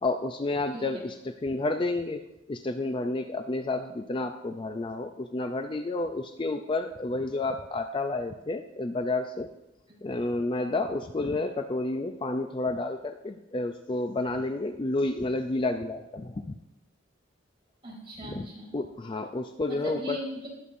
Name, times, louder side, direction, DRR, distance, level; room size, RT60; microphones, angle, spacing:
voice 1, 0.0-2.2 2.5-9.5 10.0-16.5 18.2-18.5 18.7-20.2, left 2 dB, 25° left, 7 dB, 0.4 m, -30 dB
voice 2, 17.8-18.7 19.7-20.5, right 1 dB, 30° right, -5 dB, 4.1 m, -38 dB
19.0 x 7.0 x 2.6 m, 0.93 s
head